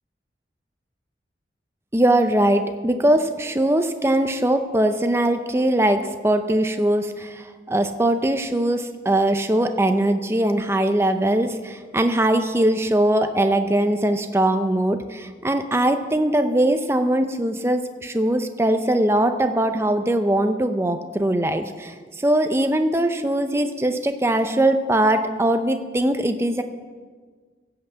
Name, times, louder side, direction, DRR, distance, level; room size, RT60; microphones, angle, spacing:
voice 1, 1.9-26.6, right 1 dB, 15° right, 7 dB, 0.6 m, -21 dB
16.5 x 5.8 x 7.8 m, 1.5 s
head